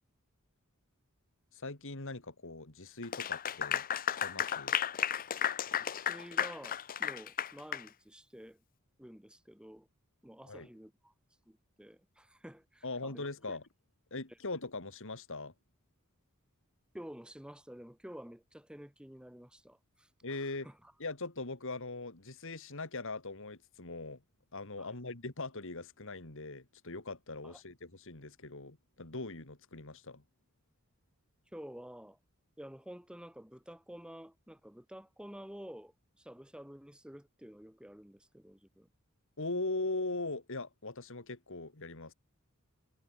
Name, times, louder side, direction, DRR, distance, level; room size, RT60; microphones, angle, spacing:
voice 1, 1.5-4.8 10.5-10.7 12.8-13.6 14.1-15.5 20.2-20.7 21.0-24.2 24.5-30.2 39.4-42.1, left 2 dB, 65° left, 2.7 m, -40 dB
Clapping / Applause, 3.0-7.9, left 9 dB, 40° left, 0.6 m, -34 dB
voice 2, 5.8-8.6 9.0-9.9 10.2-11.1 11.4-13.6 14.3-14.4 16.9-20.9 24.8-25.0 27.4-27.6 31.5-32.2 32.6-38.9, equal, 5° right, 1.5 m, -50 dB
head